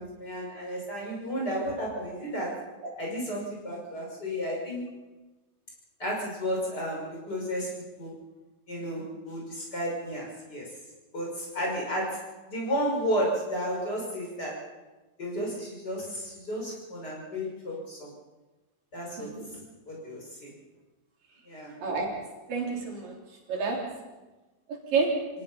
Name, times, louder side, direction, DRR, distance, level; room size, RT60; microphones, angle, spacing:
voice 1, 0.0-2.6 3.0-4.9 6.0-8.1 8.7-10.7 11.1-14.6 15.2-18.1 18.9-19.3 19.9-20.5 21.5-21.7, equal, 25° left, -2 dB, 6.3 m, -32 dB
voice 2, 19.2-19.5 21.8-22.1 22.5-23.1 23.5-23.8 24.7-25.1, right 4 dB, 70° right, -1 dB, 5.1 m, -29 dB
26.5 x 17.5 x 5.7 m, 1.2 s
omnidirectional pair, 4.0 m